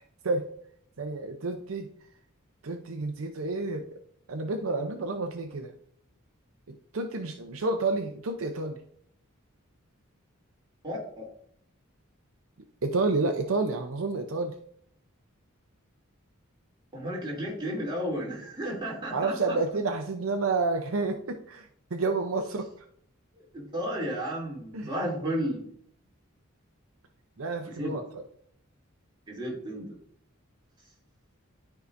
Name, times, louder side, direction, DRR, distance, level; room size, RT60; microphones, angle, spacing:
voice 1, 1.0-1.9 2.6-3.9 4.3-5.7 6.7-8.8 12.8-14.5 19.1-22.6 24.7-24.9 27.4-28.0, right 3 dB, 70° right, 5 dB, 0.6 m, -29 dB
voice 2, 10.8-11.2 16.9-19.6 23.5-25.7 27.8-27.9 29.3-29.9, equal, 20° right, -5 dB, 2.7 m, -33 dB
12.0 x 4.7 x 2.6 m, 0.67 s
head